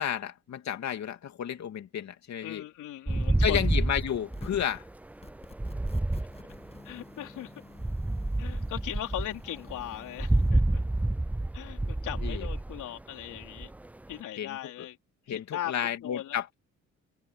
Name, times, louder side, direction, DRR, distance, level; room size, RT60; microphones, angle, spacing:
voice 1, 0.0-2.6 3.4-4.8 12.2-12.5 14.4-14.6 15.3-16.5, left 9 dB, 65° left, 2.8 m, -32 dB
voice 2, 2.4-3.7 4.5-4.6 6.8-7.5 8.4-10.8 11.5-13.7 14.1-15.0 15.3-15.7 16.0-16.4, left 12 dB, 80° left, 4.0 m, -39 dB
sound 1, 3.1-7.0 7.8-14.1, right 2 dB, 5° right, 0.3 m, -29 dB
sound 2, 4.3-4.7 5.2-10.5, left 3 dB, 20° left, 7.2 m, -50 dB
cardioid pair, 90°, 30 cm